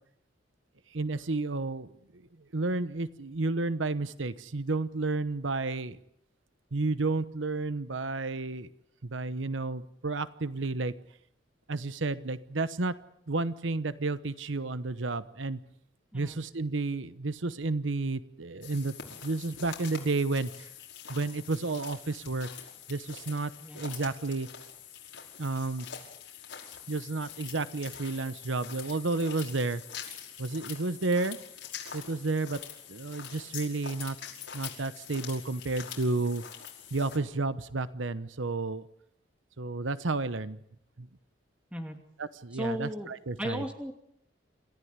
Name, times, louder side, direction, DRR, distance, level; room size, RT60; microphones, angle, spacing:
voice 1, 0.9-2.2 2.5-6.0 6.7-8.7 9.0-10.9 11.7-12.9 13.3-15.6 16.1-18.9 19.2-20.7 21.1-22.5 22.9-24.5 25.4-25.9 26.9-29.8 30.4-31.4 31.9-32.6 32.9-34.2 34.5-36.4 36.9-38.9 39.6-40.6 41.0-41.1 42.2-43.6, right 3 dB, 85° right, 14 dB, 1.0 m, -31 dB
sound 1, 18.6-37.2, left 8 dB, 75° left, 5.4 m, -45 dB
voice 2, 42.5-43.1 43.4-43.9, equal, 5° right, 4 dB, 2.7 m, -35 dB
28.0 x 14.5 x 9.7 m, 0.75 s
head